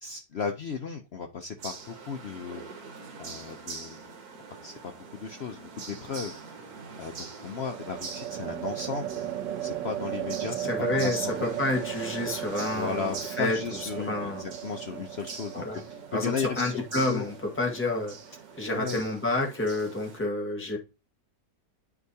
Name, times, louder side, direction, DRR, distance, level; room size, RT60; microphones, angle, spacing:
voice 1, 0.0-2.6 3.2-4.1 4.6-6.3 7.0-9.3 9.6-11.5 12.7-15.6 16.1-17.2 18.7-19.0, left 6 dB, 75° left, 5 dB, 0.5 m, -35 dB
sound 1, 1.6-20.2, right 5 dB, 60° right, 1.7 m, -44 dB
sound 2, 4.5-5.1 7.6-19.0, right 11 dB, 85° right, 1.5 m, -37 dB
voice 2, 10.6-14.4 15.5-15.8 16.1-18.2 18.5-20.8, left 2 dB, 10° left, 1 dB, 1.3 m, -29 dB
9.2 x 4.8 x 2.7 m, 0.28 s
omnidirectional pair, 1.9 m